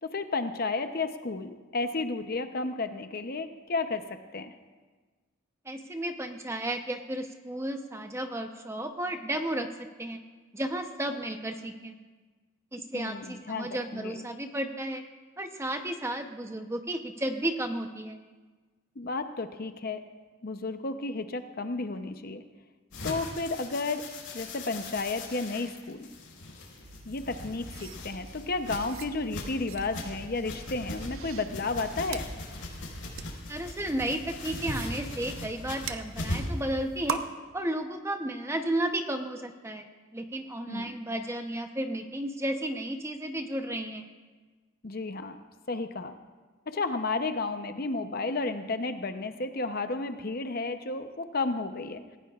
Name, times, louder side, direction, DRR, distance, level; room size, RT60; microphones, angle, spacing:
voice 1, 0.0-4.5 12.9-14.2 19.0-20.0 20.4-22.4 23.0-24.0 24.3-26.1 27.1-32.3 40.7-40.9 44.8-45.4 45.7-46.1 46.7-52.0, left 3 dB, 45° left, 8 dB, 0.7 m, -32 dB
voice 2, 5.7-10.2 10.5-12.0 12.7-15.0 15.4-18.2 33.5-37.2 37.5-39.9 40.1-44.1, right 1 dB, 15° right, 5 dB, 0.8 m, -33 dB
sound 1, 22.9-36.6, left 2 dB, 65° left, 5.0 m, -39 dB
sound 2, 26.8-37.2, right 4 dB, 70° right, 0.9 m, -43 dB
27.5 x 16.0 x 2.4 m, 1.3 s
head